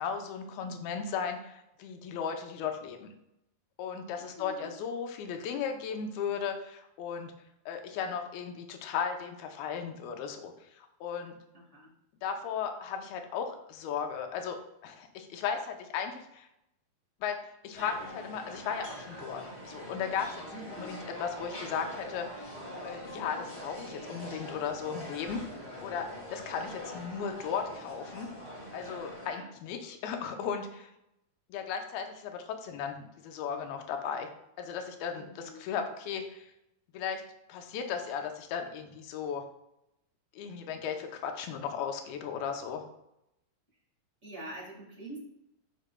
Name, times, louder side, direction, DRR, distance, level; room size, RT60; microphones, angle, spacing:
voice 1, 0.0-3.1 3.8-7.3 7.7-11.4 12.2-14.6 14.8-16.5 17.2-17.4 17.6-20.4 20.8-22.5 22.8-25.4 25.8-28.3 28.7-30.9 31.5-34.3 34.6-35.3 35.6-36.5 36.9-37.2 37.5-39.4 40.4-42.8, left 7 dB, 90° left, 5 dB, 2.6 m, -36 dB
voice 2, 4.2-4.7 11.5-11.9 20.5-21.0 29.3-29.5 35.1-35.6 44.2-45.2, right 1 dB, 45° right, -3 dB, 0.9 m, -45 dB
sound 1, 17.7-29.3, equal, 40° left, 0.5 m, -43 dB
12.0 x 5.0 x 2.2 m, 0.83 s
omnidirectional pair, 4.2 m